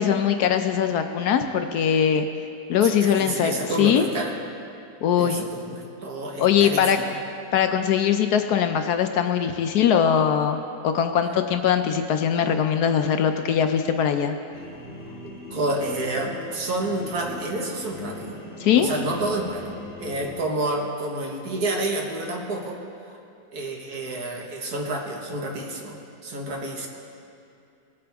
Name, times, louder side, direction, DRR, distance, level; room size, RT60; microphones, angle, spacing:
voice 1, 0.0-2.3 2.7-4.1 5.0-5.4 6.4-7.0 7.5-14.4 18.6-18.9, left 8 dB, 70° left, 7 dB, 1.0 m, -21 dB
voice 2, 2.8-4.3 5.2-7.2 15.5-18.4 18.8-22.8 23.5-26.0 26.2-26.9, right 2 dB, 60° right, 0 dB, 1.8 m, -29 dB
sound 1, 14.5-20.4, left 2 dB, 5° right, 1.4 m, -40 dB
19.5 x 8.7 x 3.5 m, 2.6 s
omnidirectional pair, 1.9 m